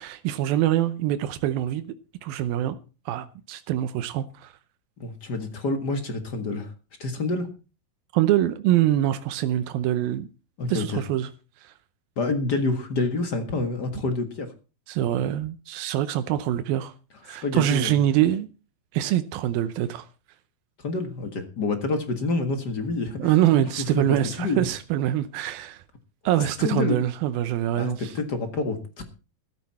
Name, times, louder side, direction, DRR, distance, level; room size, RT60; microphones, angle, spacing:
voice 1, 0.0-1.9 2.2-2.8 3.1-4.5 8.1-10.3 10.7-11.3 11.6-11.7 14.9-16.9 17.2-18.5 18.9-20.1 23.2-25.8 26.3-28.1, right 12 dB, 85° right, 2.6 m, -24 dB
voice 2, 5.0-6.7 7.0-7.5 10.6-11.0 12.2-14.5 17.4-17.9 20.8-23.3 23.6-23.7 23.9-24.7 26.2-26.3 26.6-27.0 27.7-29.0, left 3 dB, 45° left, 1.4 m, -28 dB
13.5 x 13.5 x 4.2 m
omnidirectional pair, 4.1 m